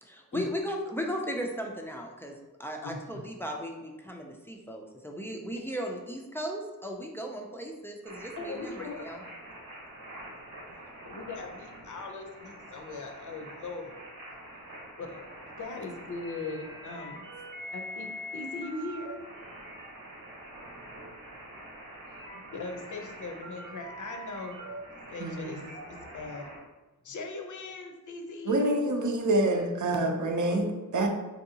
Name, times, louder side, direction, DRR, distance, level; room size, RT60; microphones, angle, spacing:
voice 1, 0.0-9.2, equal, 5° left, 1 dB, 0.3 m, -36 dB
voice 2, 2.8-3.2 8.4-9.1 11.0-13.9 15.0-15.2 15.6-17.2 17.7-19.2 22.5-24.7 25.1-25.6 25.9-26.5 27.0-28.6, left 3 dB, 60° left, 4 dB, 0.5 m, -39 dB
sound 1, 8.0-26.6, equal, 80° right, 1.0 m, -45 dB
voice 3, 25.2-25.5 28.5-31.1, right 1 dB, 60° right, 3 dB, 0.6 m, -27 dB
4.5 x 2.6 x 2.7 m, 1.2 s
wide cardioid pair, 145°, 34 cm